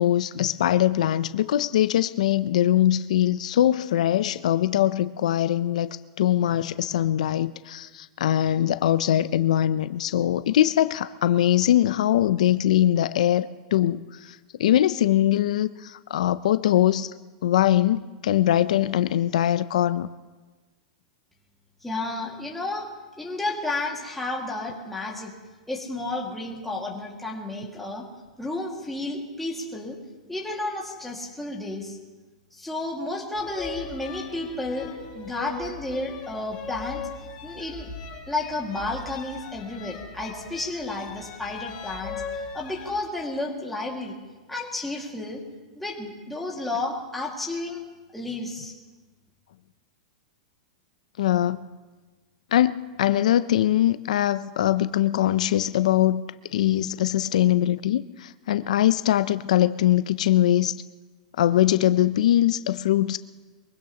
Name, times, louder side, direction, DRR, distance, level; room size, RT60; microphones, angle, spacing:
voice 1, 0.0-17.1 17.4-20.1 51.2-51.6 52.5-56.2 56.5-60.7 61.4-63.2, left 12 dB, 75° left, 14 dB, 0.4 m, -22 dB
voice 2, 21.8-22.9 23.2-25.3 25.7-28.0 28.4-30.0 30.3-32.0 32.5-37.0 37.4-37.9 38.3-42.2 42.5-44.2 44.5-45.4 45.8-47.8 48.1-48.7, left 2 dB, 5° left, -2 dB, 1.9 m, -32 dB
sound 1, 33.4-42.9, left 5 dB, 25° left, 4.0 m, -39 dB
23.0 x 17.0 x 2.9 m, 1.3 s
supercardioid pair, 155°, 4 cm